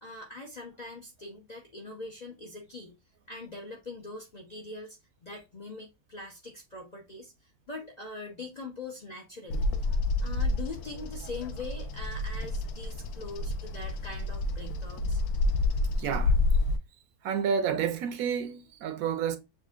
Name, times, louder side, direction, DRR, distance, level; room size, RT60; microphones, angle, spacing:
voice 1, 0.0-2.9 3.3-5.0 5.2-7.3 7.7-9.6 10.2-15.2, left 3 dB, 40° left, 0.6 m, -42 dB
Bird vocalization bird call bird song, 9.5-16.8, left 2 dB, 75° left, 1.1 m, -29 dB
voice 2, 16.0-16.4 17.2-19.4, right 7 dB, 70° right, 1.0 m, -30 dB
6.7 x 2.4 x 2.3 m
omnidirectional pair, 1.6 m